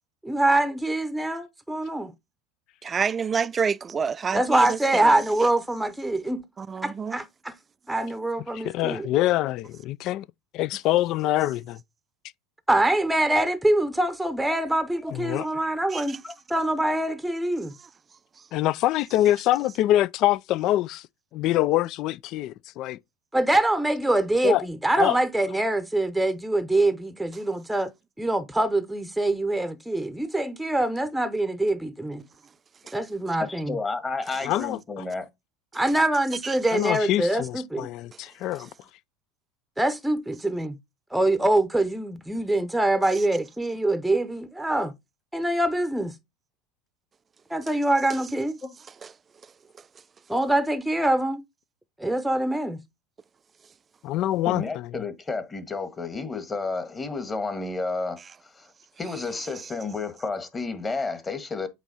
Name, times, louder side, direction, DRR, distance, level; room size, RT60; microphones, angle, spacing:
voice 1, 0.2-2.1 4.3-6.4 6.8-7.5 7.9-9.1 12.7-16.2 16.5-17.7 23.3-27.9 28.2-32.2 32.9-33.8 35.7-37.9 39.8-40.8 41.1-44.9 45.3-46.1 47.5-48.6 50.3-51.4 52.0-52.8, right 1 dB, 5° right, 0.8 m, -24 dB
voice 2, 2.8-5.2 6.6-7.2 15.9-16.2 32.9-33.0 36.4-36.6 38.6-38.7 43.2-43.3 49.0-49.1, right 6 dB, 30° right, 0.4 m, -28 dB
voice 3, 8.5-10.2 10.5-11.8 15.1-15.5 18.5-21.0 21.3-23.0 24.4-24.6 24.9-25.2 34.4-35.0 36.7-38.7 54.0-54.6, left 14 dB, 55° left, 0.3 m, -25 dB
voice 4, 33.4-35.3 54.4-58.7 59.0-61.7, left 3 dB, 25° left, 1.5 m, -31 dB
8.1 x 3.1 x 4.1 m
hypercardioid pair, 85°, 0 cm